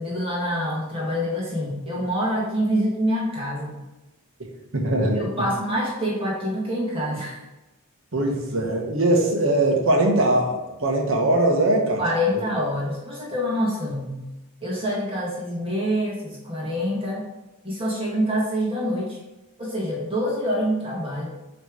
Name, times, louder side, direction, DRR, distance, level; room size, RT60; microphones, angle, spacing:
voice 1, 0.0-3.8 5.0-7.4 12.0-14.2 14.6-17.2 17.6-19.2 19.6-21.4, equal, 25° right, -4 dB, 1.7 m, -26 dB
voice 2, 4.7-5.3 8.1-12.0, right 1 dB, 65° right, 1 dB, 1.3 m, -21 dB
8.6 x 3.3 x 4.8 m, 1.1 s
head